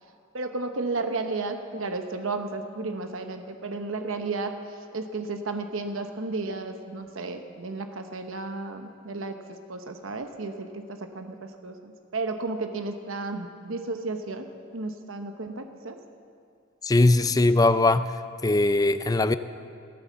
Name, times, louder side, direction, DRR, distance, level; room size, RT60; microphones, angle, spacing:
voice 1, 0.3-4.5 4.9-16.0, right 3 dB, 75° right, 6 dB, 0.9 m, -33 dB
voice 2, 16.8-18.1 18.4-19.4, left 2 dB, 20° left, 12 dB, 0.4 m, -20 dB
17.5 x 9.1 x 7.4 m, 2.3 s
head